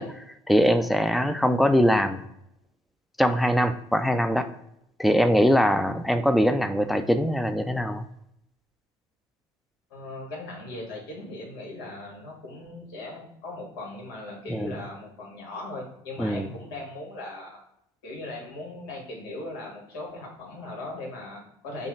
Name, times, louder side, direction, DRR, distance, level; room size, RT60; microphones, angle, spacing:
voice 1, 0.0-2.2 3.2-4.5 5.0-8.0 14.5-14.8 16.2-16.5, equal, ahead, 9 dB, 0.3 m, -22 dB
voice 2, 9.9-17.6 18.0-21.9, left 2 dB, 90° left, -1 dB, 1.6 m, -38 dB
5.3 x 2.4 x 3.2 m, 0.76 s
supercardioid pair, 90°, 11 cm